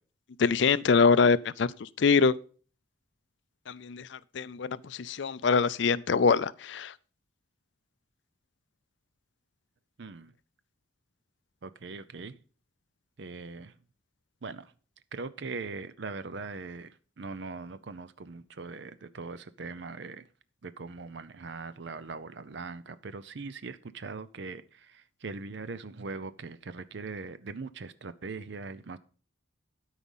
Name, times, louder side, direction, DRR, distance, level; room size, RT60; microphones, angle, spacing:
voice 1, 0.4-2.3 3.7-6.9, left 5 dB, 60° left, 0.4 m, -24 dB
voice 2, 10.0-10.3 11.6-12.4 13.2-13.8 14.4-14.7 15.1-20.3 20.6-29.0, right 4 dB, 60° right, 0.6 m, -41 dB
13.0 x 4.9 x 5.4 m
head